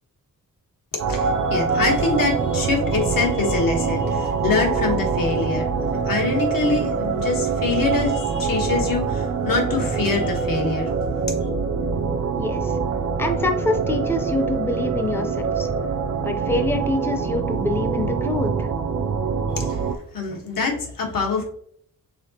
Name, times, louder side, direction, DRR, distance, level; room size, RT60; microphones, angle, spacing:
voice 1, 0.9-11.5 19.5-19.8 20.1-21.4, left 4 dB, 85° left, 0 dB, 1.3 m, -25 dB
sound 1, 1.0-20.0, right 5 dB, 55° right, 0.5 m, -24 dB
voice 2, 12.4-12.8 13.2-15.7 16.2-18.7, left 2 dB, 5° left, 5 dB, 0.4 m, -25 dB
4.9 x 3.9 x 2.8 m, 0.63 s
wide cardioid pair, 175°, 33 cm